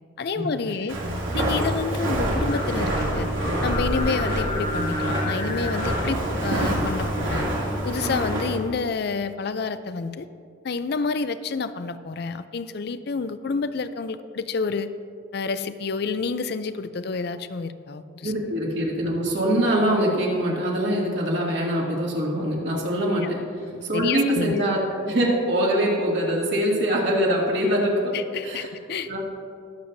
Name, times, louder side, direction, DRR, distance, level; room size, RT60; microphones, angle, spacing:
voice 1, 0.2-1.0 1.3-3.3 3.6-7.5 7.8-10.3 10.6-14.9 15.3-18.3 22.7-22.9 23.2-23.3 23.7-24.6 28.1-29.1, left 4 dB, 55° left, 12 dB, 0.4 m, -29 dB
Walk footsteps, 0.9-8.6, right 1 dB, 85° right, 2.7 m, -26 dB
Singing, 2.3-8.4, left 1 dB, 40° left, 1.2 m, -32 dB
voice 2, 18.2-28.2 28.4-28.7 29.1-29.3, equal, 60° right, -3 dB, 2.4 m, -23 dB
21.0 x 7.7 x 2.7 m, 2.3 s
head